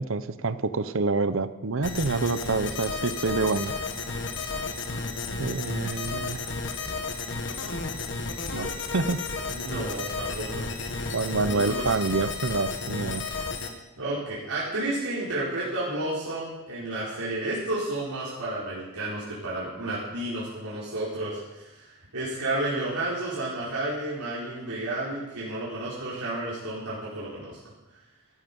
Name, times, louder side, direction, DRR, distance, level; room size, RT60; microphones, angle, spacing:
voice 1, 0.0-3.7 5.4-6.4 8.5-9.2 11.1-13.2, right 3 dB, 65° right, 13 dB, 0.8 m, -27 dB
sound 1, 1.8-13.7, left 3 dB, 55° left, 1.6 m, -32 dB
voice 2, 9.5-10.7 11.5-11.9 14.0-27.6, right 2 dB, 85° right, -8 dB, 4.2 m, -31 dB
14.5 x 13.0 x 5.4 m, 1.0 s
head